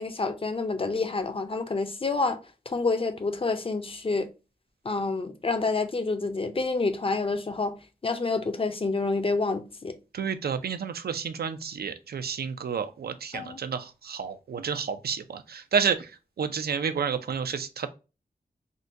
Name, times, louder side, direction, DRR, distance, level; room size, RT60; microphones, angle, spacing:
voice 1, 0.0-2.4 2.7-4.3 4.8-7.7 8.0-10.0 13.3-13.6, left 3 dB, 35° left, 0.5 m, -28 dB
voice 2, 10.1-16.1 16.4-17.9, right 6 dB, 80° right, 0.4 m, -30 dB
3.7 x 2.2 x 2.6 m
wide cardioid pair, 95°, 16 cm